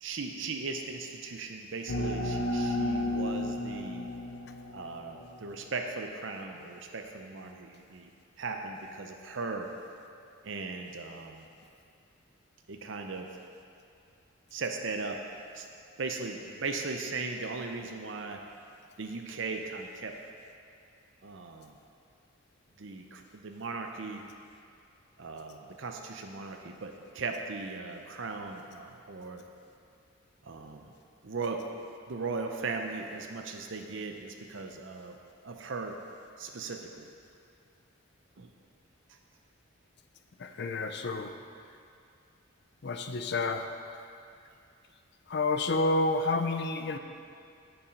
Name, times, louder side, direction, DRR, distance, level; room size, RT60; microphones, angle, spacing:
voice 1, 0.0-4.1 4.7-8.1 8.4-9.7 10.4-11.5 12.7-13.3 14.5-15.2 15.5-15.7 16.0-18.4 19.0-20.2 21.2-21.7 22.8-24.2 25.2-29.4 30.4-30.9 31.2-31.6 32.1-35.2 35.4-36.0 36.4-37.1 38.4-38.5, right 4 dB, 60° right, 3 dB, 0.6 m, -38 dB
sound 1, 1.9-5.4, left 1 dB, 85° left, 0.9 m, -33 dB
voice 2, 40.4-41.3 42.8-43.6 45.3-47.0, left 3 dB, 50° left, 7 dB, 0.5 m, -29 dB
8.8 x 7.1 x 5.1 m, 2.5 s
head